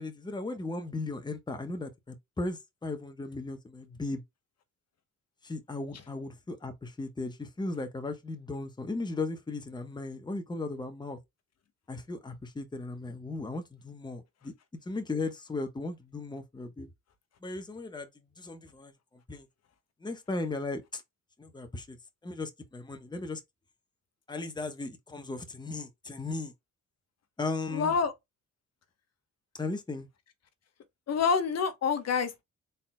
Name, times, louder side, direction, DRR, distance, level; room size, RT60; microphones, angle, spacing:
voice 1, 0.0-4.2 5.4-11.2 11.9-14.5 14.9-16.9 17.4-18.1 18.4-18.9 19.3-19.5 20.0-21.0 21.4-22.0 22.2-23.4 24.3-26.5 27.4-27.9 29.5-30.1, left 3 dB, 15° left, 1.0 m, -36 dB
voice 2, 27.7-28.1 31.1-32.4, left 6 dB, 55° left, 1.0 m, -27 dB
4.1 x 4.0 x 2.2 m
cardioid pair, 90°, 30 cm